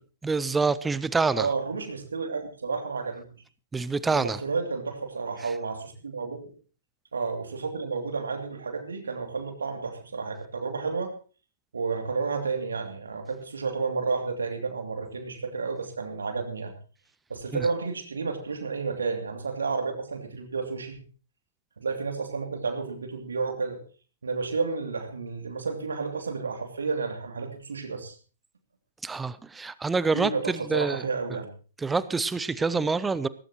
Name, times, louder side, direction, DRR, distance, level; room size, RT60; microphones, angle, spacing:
voice 1, 0.2-1.5 3.7-4.4 17.5-17.7 29.0-31.0 31.8-33.3, right 4 dB, 10° right, 17 dB, 0.6 m, -26 dB
voice 2, 1.4-3.3 4.1-6.5 7.1-11.1 11.7-16.7 17.3-20.9 21.8-23.8 24.2-28.1 30.1-31.5, right 4 dB, 70° right, 4 dB, 2.8 m, -31 dB
18.0 x 16.5 x 3.0 m, 0.38 s
figure-of-eight pair, 110°, 0 cm